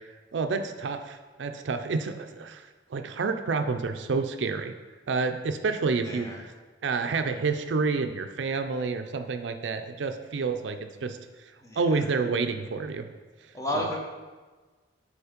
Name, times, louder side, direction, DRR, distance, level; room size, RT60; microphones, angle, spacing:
voice 1, 0.3-2.6 2.9-4.7 5.1-6.3 6.8-11.2 11.8-13.1 13.7-13.8, right 4 dB, 80° right, 7 dB, 0.5 m, -29 dB
voice 2, 6.0-6.4 11.6-12.1 13.5-14.0, left 1 dB, 20° left, -1 dB, 1.1 m, -32 dB
7.0 x 4.3 x 5.1 m, 1.3 s
head